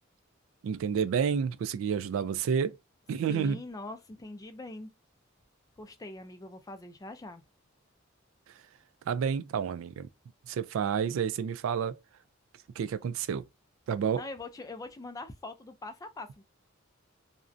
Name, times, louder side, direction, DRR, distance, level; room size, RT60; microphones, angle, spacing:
voice 1, 0.6-2.8 3.1-3.6 9.1-10.1 10.5-12.0 12.8-13.4 13.9-14.2, right 7 dB, 75° right, 0.3 m, -29 dB
voice 2, 3.3-4.9 5.8-7.4 14.2-16.4, left 2 dB, 15° left, 0.3 m, -42 dB
2.5 x 2.1 x 2.4 m
head